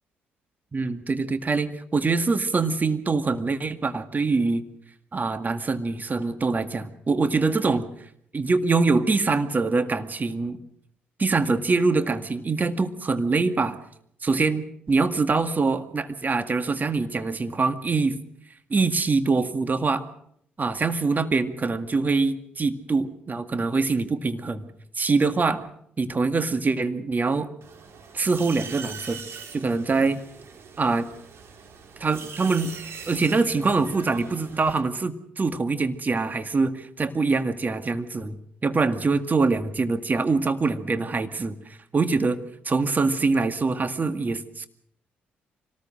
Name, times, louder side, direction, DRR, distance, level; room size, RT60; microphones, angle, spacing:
voice 1, 0.7-4.6 5.1-7.9 8.3-10.6 11.2-13.8 14.2-18.2 18.7-20.0 20.6-24.7 25.0-25.6 26.0-27.5 28.1-29.2 29.5-30.2 30.8-31.1 32.0-32.7 33.1-38.4 38.6-42.4 42.7-44.7, right 3 dB, 35° right, 9 dB, 1.9 m, -24 dB
sound 1, 27.6-34.8, right 6 dB, 55° right, 4.2 m, -42 dB
25.0 x 19.0 x 6.4 m, 0.69 s
hypercardioid pair, 45°, 5 cm